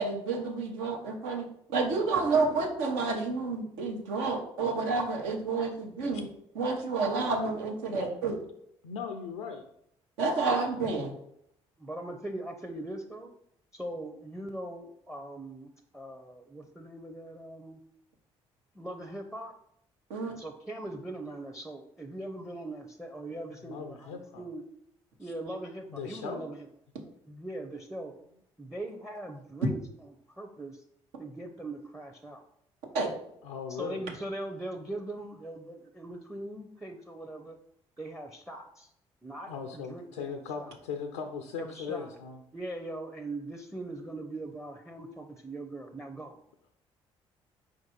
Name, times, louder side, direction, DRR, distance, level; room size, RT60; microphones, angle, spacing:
voice 1, 0.0-6.3 6.5-8.3 10.2-11.1 20.1-20.3 32.9-33.1, right 4 dB, 75° right, 1 dB, 0.9 m, -29 dB
voice 2, 7.8-8.4 8.8-9.6 23.6-24.5 25.9-26.4 33.4-34.1 39.5-42.4, left 6 dB, 80° left, 5 dB, 0.4 m, -38 dB
voice 3, 11.8-13.3 13.7-17.8 18.7-19.5 20.3-24.6 25.2-26.7 27.3-28.1 28.6-29.8 30.4-30.8 31.2-32.4 33.7-37.6 38.0-38.9 39.2-40.8 41.6-42.2 42.5-46.4, right 1 dB, 5° right, 6 dB, 0.6 m, -41 dB
4.5 x 2.6 x 4.2 m, 0.73 s
hypercardioid pair, 50°, 14 cm